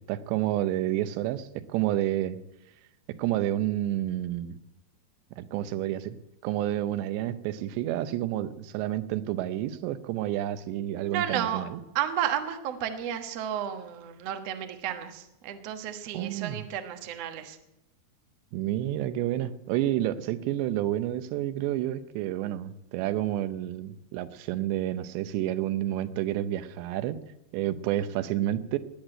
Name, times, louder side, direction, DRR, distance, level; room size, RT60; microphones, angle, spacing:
voice 1, 0.1-2.4 3.1-4.6 5.4-6.2 6.4-11.8 16.1-16.7 18.5-27.2 27.5-28.8, right 13 dB, 90° right, 13 dB, 3.0 m, -29 dB
voice 2, 11.0-11.6 11.9-17.6, right 10 dB, 65° right, 7 dB, 1.6 m, -32 dB
19.5 x 8.1 x 8.9 m, 0.92 s
omnidirectional pair, 4.9 m